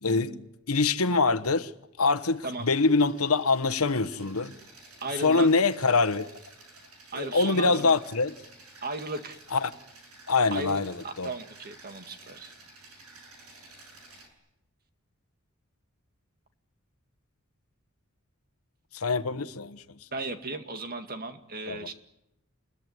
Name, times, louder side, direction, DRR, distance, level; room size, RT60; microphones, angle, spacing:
voice 1, 0.0-1.7 2.0-4.6 5.2-6.3 7.1-8.3 9.5-9.7 10.3-11.3 18.9-19.8 21.7-21.9, left 4 dB, 90° left, 1.2 m, -24 dB
sound 1, 2.0-14.3, right 3 dB, 90° right, 7.1 m, -52 dB
voice 2, 5.0-5.5 7.1-8.0 8.8-9.4 10.5-12.5 20.1-21.9, right 2 dB, 45° right, 2.1 m, -36 dB
28.0 x 21.5 x 9.6 m
head